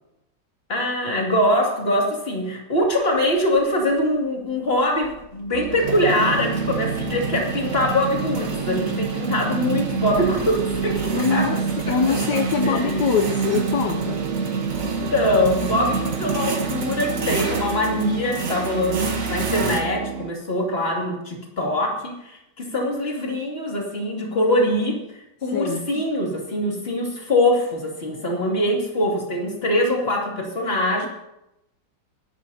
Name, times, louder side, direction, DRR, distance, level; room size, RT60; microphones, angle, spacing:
voice 1, 0.7-11.6 11.9-12.1 12.6-12.9 15.1-31.1, left 1 dB, 30° left, 0 dB, 2.7 m, -23 dB
sound 1, 2.9-3.0 3.4-3.6 4.8-19.8, right 4 dB, 50° right, 1.8 m, -28 dB
sound 2, 5.5-20.3, right 7 dB, 70° right, 0.7 m, -31 dB
voice 2, 11.1-11.6 11.9-14.2 25.4-26.0, left 5 dB, 70° left, 6 dB, 1.4 m, -23 dB
22.5 x 11.5 x 2.8 m, 0.88 s
omnidirectional pair, 2.0 m